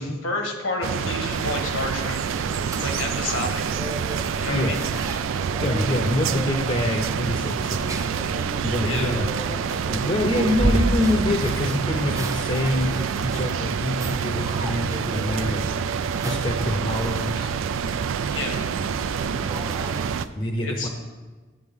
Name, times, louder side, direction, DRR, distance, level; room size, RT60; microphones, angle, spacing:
voice 1, 0.0-2.2 2.8-3.8 4.4-4.8 8.8-9.1 18.3-18.6 20.6-20.9, left 2 dB, 80° left, 2 dB, 1.5 m, -30 dB
sound 1, 0.8-20.3, right 6 dB, 90° right, 0.4 m, -27 dB
sound 2, 1.3-20.3, right 1 dB, 15° right, 0.4 m, -33 dB
voice 2, 4.5-4.8 5.6-8.0 8.6-9.6 9.9-15.6 16.2-17.5 20.3-20.9, left 1 dB, 30° left, 2 dB, 0.7 m, -26 dB
9.9 x 8.7 x 3.6 m, 1.3 s
head